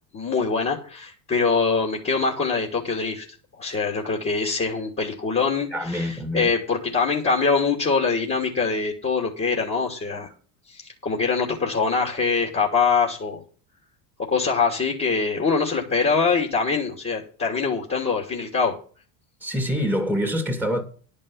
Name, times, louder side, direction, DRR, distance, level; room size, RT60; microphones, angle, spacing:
voice 1, 0.1-3.2 3.6-10.3 10.7-13.4 14.2-18.8, left 4 dB, 25° left, 2.9 m, -24 dB
voice 2, 5.7-6.5 19.4-20.8, equal, 5° left, 2.2 m, -25 dB
11.0 x 5.5 x 8.5 m
hypercardioid pair, 85°, 48 cm